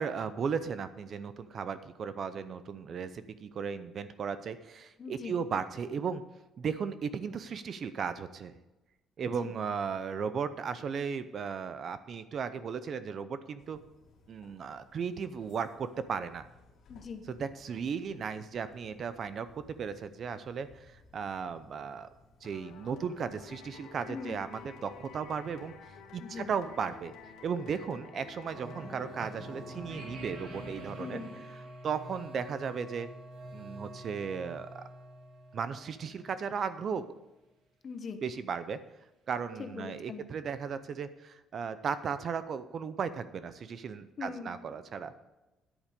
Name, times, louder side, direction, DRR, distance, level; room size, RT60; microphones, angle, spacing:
voice 1, 0.0-6.2 6.6-8.5 9.2-13.8 14.3-16.5 17.3-22.1 22.4-27.1 27.4-31.2 31.8-33.1 33.5-34.8 35.5-37.1 38.2-38.8 39.3-45.2, right 6 dB, 35° right, 13 dB, 0.6 m, -36 dB
voice 2, 5.0-5.4 9.2-9.5 16.9-17.2 24.1-24.4 26.2-26.5 31.0-31.3 37.8-38.2 39.6-40.2 44.2-44.6, left 5 dB, 30° left, 8 dB, 1.0 m, -41 dB
sound 1, 13.6-27.8, left 3 dB, 50° left, 2.3 m, -62 dB
sound 2, 22.4-31.3, left 6 dB, 90° left, 2.0 m, -51 dB
sound 3, 28.5-36.5, right 1 dB, 60° right, 3.0 m, -46 dB
10.0 x 8.6 x 6.6 m, 1.0 s
cardioid pair, 175°, 0 cm